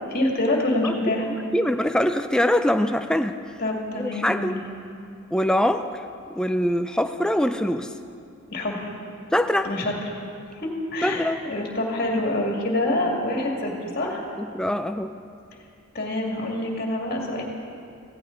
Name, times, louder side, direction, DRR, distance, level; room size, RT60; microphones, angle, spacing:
voice 1, 0.1-1.3 3.6-4.6 8.5-9.0 9.6-9.9 10.6-14.2 15.9-17.4, left 1 dB, 45° left, -1 dB, 2.4 m, -26 dB
voice 2, 0.8-3.4 3.9-4.5 5.3-5.9 6.3-7.9 9.3-9.7 11.0-11.4 14.4-15.2, left 1 dB, 5° left, 8 dB, 0.4 m, -23 dB
16.0 x 16.0 x 4.0 m, 2.6 s
head